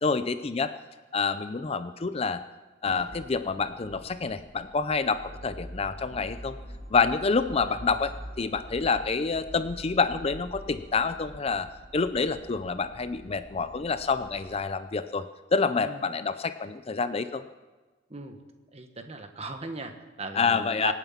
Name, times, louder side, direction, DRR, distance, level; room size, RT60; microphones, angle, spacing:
voice 1, 0.0-0.7 1.1-2.4 2.8-6.6 6.9-11.7 11.9-15.3 15.5-17.4 20.3-20.9, left 4 dB, 30° left, 12 dB, 0.5 m, -27 dB
sound 1, 2.8-14.6, equal, 65° right, 5.2 m, -45 dB
voice 2, 15.8-16.1 18.1-18.4 18.7-20.9, right 3 dB, 30° right, 6 dB, 1.4 m, -38 dB
25.5 x 9.1 x 5.8 m, 1.3 s
head